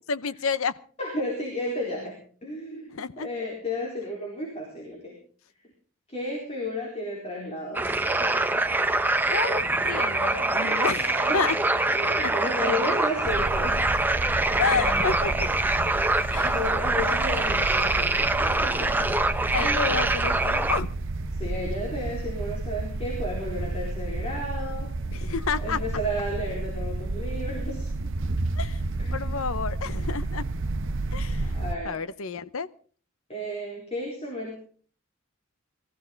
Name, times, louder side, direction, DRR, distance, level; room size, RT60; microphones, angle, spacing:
voice 1, 0.1-0.7 2.9-3.3 9.3-11.6 12.2-12.3 14.6-15.5 16.3-16.6 19.5-20.9 25.1-25.8 28.6-28.8 29.1-30.4 31.1-31.5 31.8-32.7, left 5 dB, 75° left, 15 dB, 0.8 m, -30 dB
voice 2, 1.0-5.2 6.1-8.7 10.1-11.5 11.9-13.9 16.4-19.1 19.6-20.0 21.3-25.0 25.6-27.9 29.0-29.5 31.4-32.0 33.3-34.5, left 1 dB, 30° left, -1 dB, 4.1 m, -33 dB
sound 1, 7.7-20.8, right 2 dB, 10° right, 0.7 m, -24 dB
sound 2, 13.3-31.8, right 2 dB, 60° right, 0.9 m, -31 dB
20.5 x 15.0 x 3.9 m, 0.42 s
head